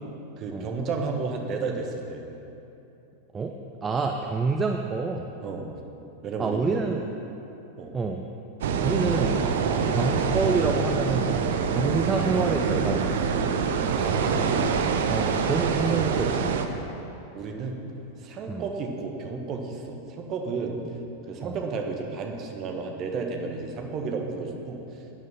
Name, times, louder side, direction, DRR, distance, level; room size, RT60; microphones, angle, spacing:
voice 1, 0.4-2.2 5.4-5.7 6.2-6.6 7.8-7.9 13.9-14.5 17.3-17.8 18.2-20.8 21.3-24.8, right 4 dB, 35° right, 3 dB, 1.5 m, -32 dB
voice 2, 3.3-5.3 6.4-7.0 7.9-8.2 8.8-9.5 9.9-11.4 11.7-13.3 15.1-16.6 18.5-18.7 21.4-21.6, right 4 dB, 20° right, 3 dB, 0.6 m, -28 dB
sound 1, 8.6-16.7, right 6 dB, 60° right, 0.8 m, -25 dB
12.0 x 9.3 x 5.8 m, 2.9 s
figure-of-eight pair, 90°, 0 cm